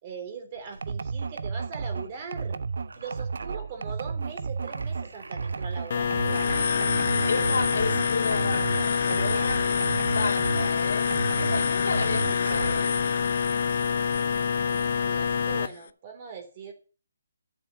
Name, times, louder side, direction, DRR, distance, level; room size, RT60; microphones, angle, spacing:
voice 1, 0.0-2.6 2.9-6.9 14.5-16.7, right 6 dB, 35° right, 3.4 m, -41 dB
sound 1, 0.6-10.3, right 3 dB, 80° right, 1.3 m, -47 dB
sound 2, 0.8-10.8 11.1-12.9, right 5 dB, 65° right, 0.6 m, -33 dB
sound 3, 5.9-15.7, left 6 dB, 50° left, 0.7 m, -26 dB
voice 2, 7.3-9.7 9.9-12.9, left 4 dB, 70° left, 2.8 m, -32 dB
11.0 x 7.2 x 6.8 m
figure-of-eight pair, 150°, 0 cm